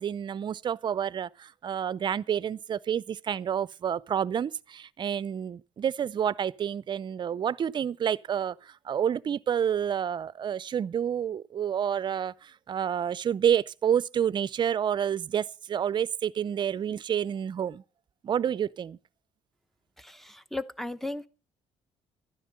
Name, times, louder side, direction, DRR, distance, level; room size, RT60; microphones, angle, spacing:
voice 1, 0.0-17.8 18.2-19.0, right 9 dB, 40° right, 0.6 m, -29 dB
voice 2, 20.0-21.3, left 2 dB, ahead, 1.0 m, -36 dB
12.5 x 10.0 x 6.7 m
cardioid pair, 105°, 11 cm